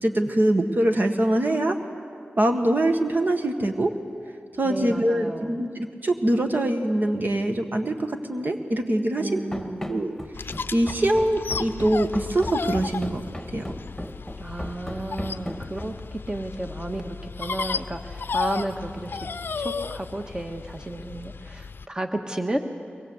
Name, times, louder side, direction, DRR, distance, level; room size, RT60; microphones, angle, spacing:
voice 1, 0.0-1.8 2.4-3.9 4.6-9.4 9.9-10.1 10.7-13.2 13.5-13.6, right 1 dB, 55° right, 5 dB, 1.6 m, -23 dB
voice 2, 4.6-5.7 9.2-9.9 14.4-19.1 19.6-22.6, right 1 dB, 20° right, 5 dB, 1.5 m, -32 dB
Run, 9.5-16.1, left 1 dB, 5° left, 2.0 m, -36 dB
sound 1, 10.3-21.9, left 4 dB, 70° left, 0.5 m, -34 dB
23.0 x 20.0 x 8.1 m, 2.3 s
wide cardioid pair, 70°, 4 cm